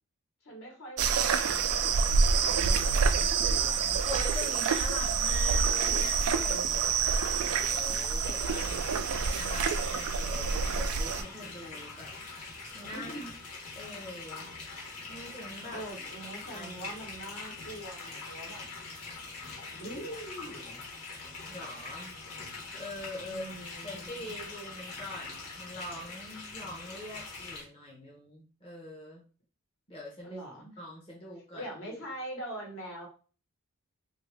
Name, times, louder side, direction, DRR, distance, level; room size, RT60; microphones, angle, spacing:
voice 1, 0.4-4.0 12.9-13.3 15.7-18.6 19.7-20.8 23.2-24.3 30.2-30.7 31.5-33.1, right 1 dB, 60° left, -1 dB, 1.2 m, -43 dB
sound 1, 1.0-11.2, right 5 dB, 75° right, 0.4 m, -27 dB
voice 2, 4.0-12.1 12.4-13.3 13.8-14.5 15.1-15.8 16.5-17.0 21.5-22.1 22.7-29.2 29.9-32.0, left 1 dB, 25° left, -4 dB, 0.7 m, -44 dB
sound 2, 8.2-27.6, left 3 dB, 80° left, 1.3 m, -43 dB
3.0 x 2.6 x 3.3 m, 0.37 s
head